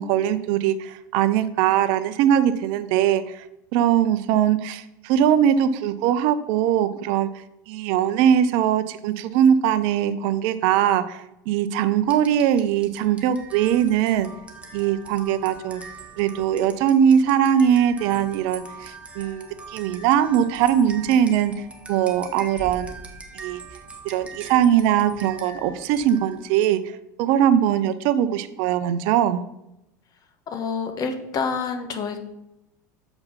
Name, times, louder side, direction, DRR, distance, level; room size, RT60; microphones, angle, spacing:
voice 1, 0.0-3.4 3.7-7.3 7.7-14.3 14.7-15.8 16.2-21.5 21.9-22.9 23.3-23.6 24.0-26.8 27.2-29.4, right 9 dB, 60° right, 13 dB, 0.6 m, -21 dB
sound 1, 12.1-26.5, right 3 dB, 10° right, 1.6 m, -42 dB
voice 2, 30.5-32.2, left 5 dB, 40° left, 7 dB, 1.3 m, -27 dB
7.0 x 5.6 x 5.7 m, 0.88 s
hypercardioid pair, 80°, 10 cm